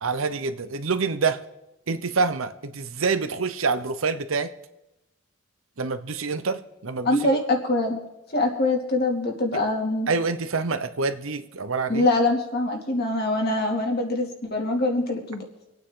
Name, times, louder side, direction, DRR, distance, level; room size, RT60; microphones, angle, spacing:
voice 1, 0.0-1.4 1.9-4.5 5.8-7.2 9.5-9.6 10.1-12.1, right 4 dB, 75° right, 11 dB, 0.9 m, -26 dB
voice 2, 7.0-8.0 8.3-10.1 11.9-15.4, left 2 dB, 50° left, 1 dB, 2.6 m, -24 dB
26.5 x 9.1 x 3.9 m, 0.92 s
head